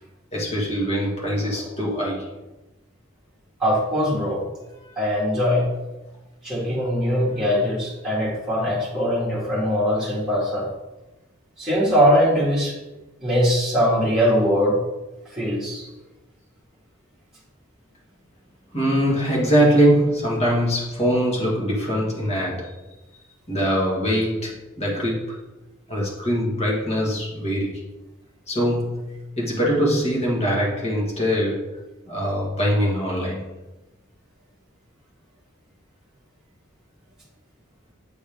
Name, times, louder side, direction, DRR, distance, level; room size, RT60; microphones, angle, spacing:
voice 1, 0.3-2.3 4.8-4.9 18.7-22.8 23.5-25.4 25.9-27.8 28.5-31.8 32.1-33.5, equal, 30° left, -3 dB, 1.6 m, -22 dB
voice 2, 3.6-4.4 5.0-5.7 6.4-10.7 11.6-12.7 13.2-14.7 15.3-15.9, equal, 5° right, -9 dB, 2.0 m, -21 dB
8.4 x 4.3 x 3.5 m, 1.0 s
head